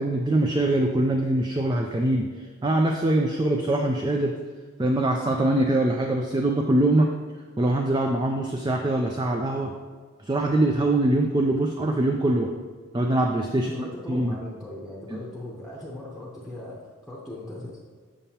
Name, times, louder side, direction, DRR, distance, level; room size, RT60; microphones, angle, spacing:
voice 1, 0.0-4.3 4.8-7.1 7.6-9.7 10.2-12.5 12.9-14.4 15.1-15.2, right 1 dB, 20° right, 2 dB, 0.3 m, -23 dB
voice 2, 13.5-17.8, left 1 dB, ahead, -6 dB, 0.8 m, -38 dB
7.1 x 6.7 x 2.9 m, 1.5 s
head